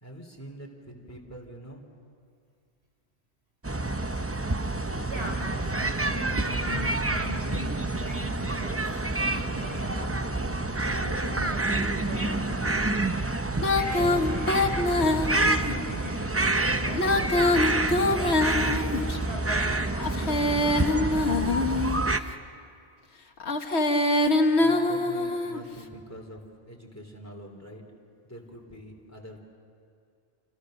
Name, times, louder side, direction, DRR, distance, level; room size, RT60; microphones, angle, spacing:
voice 1, 0.0-1.9 24.6-26.4 26.7-27.8 28.2-29.4, right 1 dB, 15° left, 1 dB, 3.5 m, -45 dB
sound 1, 3.6-22.2, right 2 dB, 15° right, 0.6 m, -28 dB
voice 2, 5.1-5.5 5.8-8.8 9.1-10.1 10.5-13.1 13.7-17.7 18.5-19.8 20.1-20.7 24.5-24.6, equal, 75° right, 1 dB, 5.1 m, -40 dB
Female singing, 13.6-15.7 16.9-19.2 20.0-22.1 23.4-25.6, left 2 dB, 90° left, 1.8 m, -24 dB
28.5 x 28.5 x 6.6 m, 2.4 s
omnidirectional pair, 1.1 m